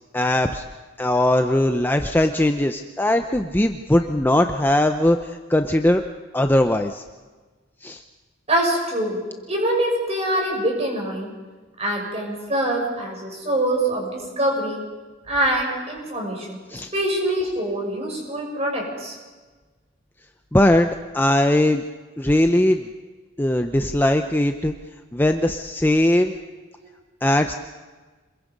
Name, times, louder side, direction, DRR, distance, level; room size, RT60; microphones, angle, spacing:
voice 1, 0.1-0.6 1.0-5.2 5.5-6.0 6.3-7.0 7.8-8.0 16.7-16.9 20.5-21.8 22.2-22.8 23.4-24.7 25.1-26.4 27.2-27.5, left 1 dB, 10° left, 6 dB, 0.7 m, -19 dB
voice 2, 8.5-9.2 9.5-11.3 11.8-14.8 15.3-19.2, right 1 dB, 30° right, 0 dB, 6.4 m, -24 dB
26.5 x 21.5 x 5.4 m, 1.3 s
head